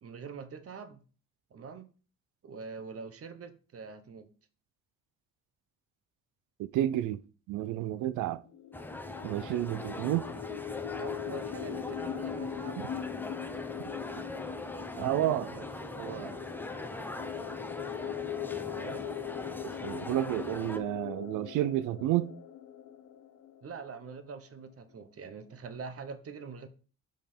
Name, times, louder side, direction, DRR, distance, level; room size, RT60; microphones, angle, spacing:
voice 1, 0.0-1.0 1.5-1.9 2.4-4.3 11.0-13.1 18.7-19.0 23.6-26.7, right 5 dB, 50° right, 1.1 m, -44 dB
voice 2, 6.6-7.2 7.5-8.4 9.2-10.3 12.8-12.9 15.0-15.7 16.0-16.4 19.6-22.3, right 13 dB, 85° right, 0.5 m, -31 dB
sound 1, 8.5-24.1, left 9 dB, 70° left, 0.8 m, -41 dB
sound 2, 8.7-20.8, left 1 dB, 5° left, 0.8 m, -42 dB
5.4 x 5.3 x 4.4 m
cardioid pair, 90°, 30 cm